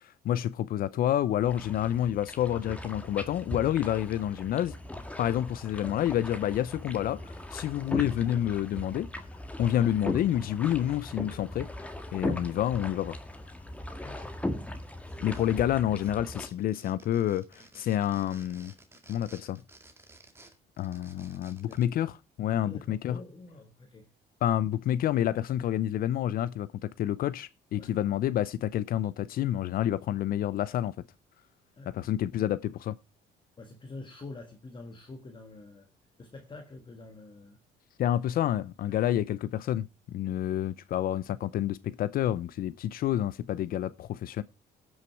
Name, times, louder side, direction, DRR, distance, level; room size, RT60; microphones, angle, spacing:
voice 1, 0.2-4.7 5.2-9.3 9.6-11.7 12.1-13.2 15.2-18.7 19.1-19.6 20.8-23.2 24.4-30.9 31.9-33.0 38.0-39.9 40.1-44.4, left 11 dB, 60° left, 0.6 m, -29 dB
sound 1, 1.4-16.5, left 1 dB, 10° left, 1.6 m, -39 dB
voice 2, 14.0-14.4 21.7-22.0 22.6-24.1 27.8-28.0 31.7-32.0 33.6-35.9 36.2-37.6 38.9-39.0, left 2 dB, 30° left, 1.5 m, -46 dB
sound 2, 15.1-15.7 16.0-21.9, right 2 dB, 15° right, 2.0 m, -55 dB
17.5 x 6.4 x 4.5 m
cardioid pair, 110°, 17 cm